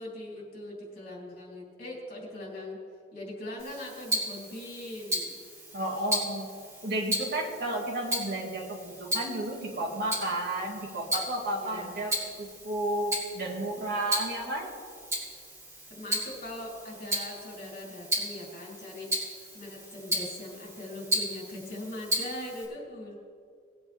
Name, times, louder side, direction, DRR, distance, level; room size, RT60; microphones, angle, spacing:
voice 1, 0.0-2.8 3.1-5.4 11.6-12.0 15.9-23.2, left 1 dB, 55° left, -3 dB, 3.5 m, -41 dB
Tick-tock, 3.6-22.6, equal, 15° right, 2.6 m, -35 dB
voice 2, 5.7-6.5 6.8-14.7, right 1 dB, 60° right, -2 dB, 2.4 m, -32 dB
19.0 x 8.0 x 3.6 m, 2.2 s
head